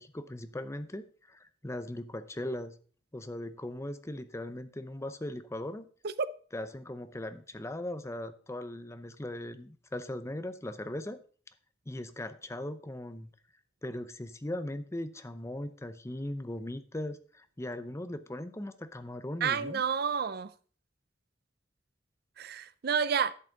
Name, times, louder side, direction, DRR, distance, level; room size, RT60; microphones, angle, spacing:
voice 1, 0.0-2.7 3.1-5.9 6.5-11.2 11.9-13.3 13.8-19.8, left 1 dB, 15° left, 0.7 m, -39 dB
voice 2, 19.4-20.5 22.4-23.3, right 6 dB, 60° right, 0.5 m, -30 dB
11.0 x 7.8 x 4.0 m
head